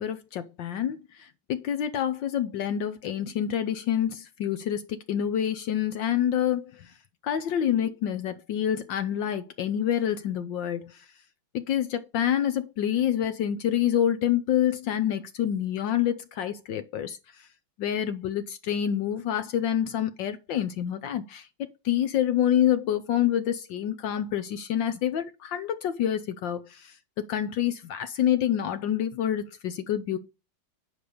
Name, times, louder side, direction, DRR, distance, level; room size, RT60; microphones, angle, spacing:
voice 1, 0.0-6.9 7.2-11.0 11.5-17.2 17.8-26.9 27.3-30.2, left 10 dB, 70° left, 1.4 m, -27 dB
9.8 x 5.3 x 5.0 m
omnidirectional pair, 2.2 m